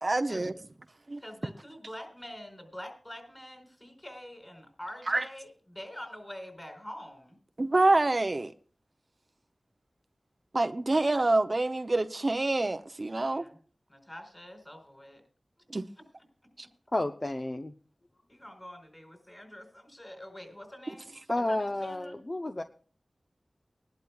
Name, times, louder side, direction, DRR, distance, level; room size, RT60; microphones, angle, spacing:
voice 1, 0.0-0.5 1.1-1.2 5.1-5.2 7.6-8.5 10.5-13.4 15.7-15.8, right 2 dB, 45° right, 0.6 m, -26 dB
voice 2, 1.2-7.4 10.9-11.0 13.2-13.6 13.9-15.2 18.3-22.2, left 1 dB, 20° left, 4.4 m, -45 dB
voice 3, 16.9-17.7 21.3-22.6, left 1 dB, 40° left, 0.7 m, -31 dB
20.0 x 11.5 x 2.4 m
wide cardioid pair, 45°, 0 cm